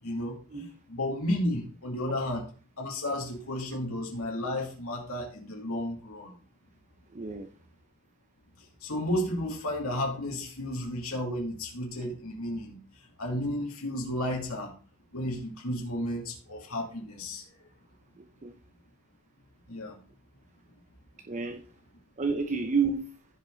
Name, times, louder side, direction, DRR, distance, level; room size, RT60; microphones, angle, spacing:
voice 1, 0.0-2.4 2.8-6.3 8.8-14.7 15.1-17.6 19.7-20.0, left 1 dB, 75° left, -1 dB, 2.7 m, -33 dB
voice 2, 7.1-7.5 18.2-18.5 21.3-21.6 22.2-23.1, right 5 dB, 35° right, 7 dB, 0.7 m, -30 dB
15.5 x 5.4 x 3.9 m, 0.37 s
head